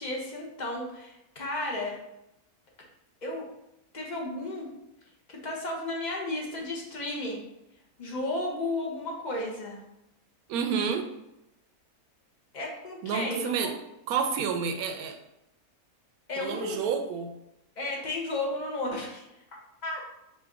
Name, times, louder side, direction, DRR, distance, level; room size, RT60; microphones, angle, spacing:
voice 1, 0.0-2.0 3.2-3.4 3.9-4.7 5.3-7.4 8.0-9.8 12.5-13.7 16.3-16.8 17.8-19.2 19.8-20.2, left 2 dB, 40° left, -1 dB, 0.7 m, -33 dB
voice 2, 10.5-11.1 13.0-13.7 14.1-15.2 16.4-17.3, right 6 dB, 75° right, 6 dB, 1.0 m, -29 dB
5.2 x 2.6 x 3.5 m, 0.87 s
omnidirectional pair, 1.6 m